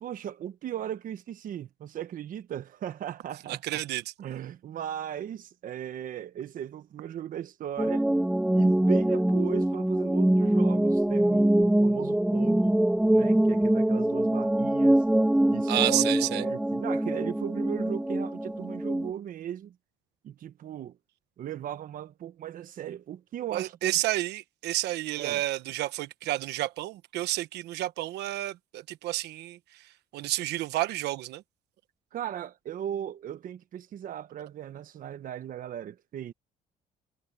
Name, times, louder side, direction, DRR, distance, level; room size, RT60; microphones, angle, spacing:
voice 1, 0.0-3.6 4.2-8.1 8.5-12.8 13.1-15.0 15.5-19.8 20.2-21.0 21.4-24.0 25.2-25.4 32.1-36.3, right 10 dB, 55° right, 1.1 m, -37 dB
voice 2, 3.5-4.1 15.7-16.4 23.5-31.4, right 15 dB, 80° right, 1.2 m, -30 dB
sound 1, 7.8-19.1, right 1 dB, 5° right, 0.6 m, -24 dB
cardioid pair, 110°, 17 cm